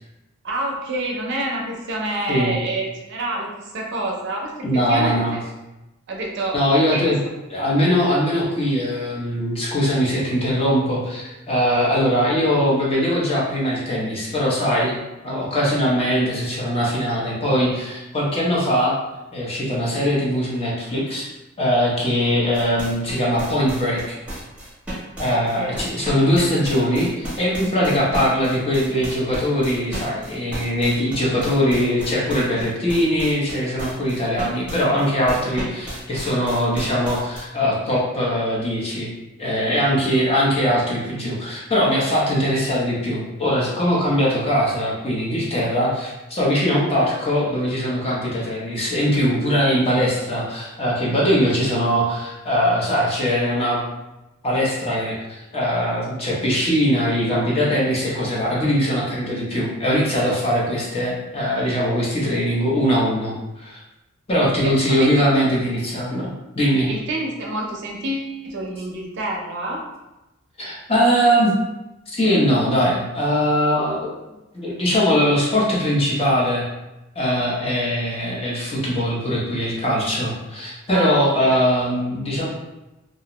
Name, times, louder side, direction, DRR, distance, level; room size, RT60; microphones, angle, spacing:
voice 1, 0.4-4.5 4.9-5.4 6.1-7.1 25.3-25.8 64.4-65.3 66.9-69.8 80.9-81.6, right 2 dB, 60° right, -1 dB, 0.5 m, -28 dB
voice 2, 4.6-5.4 6.5-7.2 7.5-18.9 19.3-21.3 21.6-24.2 25.2-39.1 39.4-53.8 54.4-63.8 64.3-66.3 66.5-66.9 70.6-71.5 72.1-74.1 74.5-76.6 77.2-82.5, equal, 30° left, -5 dB, 0.6 m, -21 dB
sound 1, 22.5-37.4, right 1 dB, 5° right, 0.8 m, -33 dB
2.4 x 2.1 x 2.9 m, 0.99 s
head